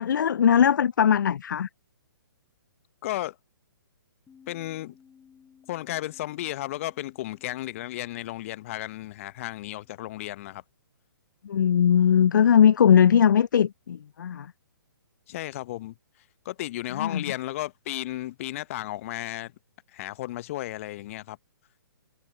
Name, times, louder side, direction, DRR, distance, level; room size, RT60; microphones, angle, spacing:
voice 1, 0.0-1.7 11.4-14.5 16.9-17.2, left 8 dB, 60° left, 0.5 m, -20 dB
voice 2, 3.0-3.4 4.5-5.0 5.7-10.6 15.3-15.9 16.4-19.5 19.9-21.4, left 15 dB, 40° left, 0.9 m, -34 dB
Bass guitar, 4.3-10.5, left 7 dB, 10° left, 4.4 m, -60 dB
figure-of-eight pair, 130°, 12 cm